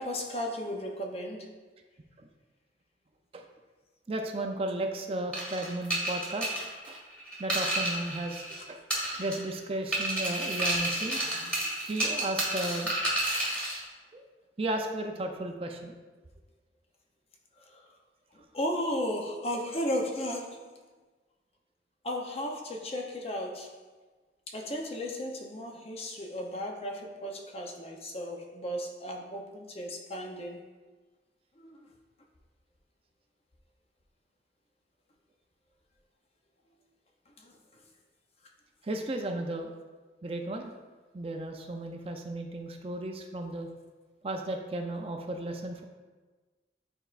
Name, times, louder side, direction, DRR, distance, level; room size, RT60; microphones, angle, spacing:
voice 1, 0.0-1.5 17.7-17.8 18.5-20.8 22.0-23.8 24.5-30.6 31.6-31.8 37.4-37.6, equal, 35° left, 1 dB, 0.6 m, -35 dB
voice 2, 4.1-6.5 6.9-7.0 7.4-8.4 8.7-8.8 9.2-11.6 11.9-13.0 14.1-14.3 14.6-15.9 38.8-39.7 40.2-40.7 41.1-43.7 44.2-45.8, right 1 dB, 35° right, 3 dB, 0.4 m, -34 dB
sound 1, 5.3-8.6 8.9-9.6 9.9-13.8, right 1 dB, 5° left, 1.5 m, -31 dB
8.9 x 4.4 x 2.4 m, 1.3 s
head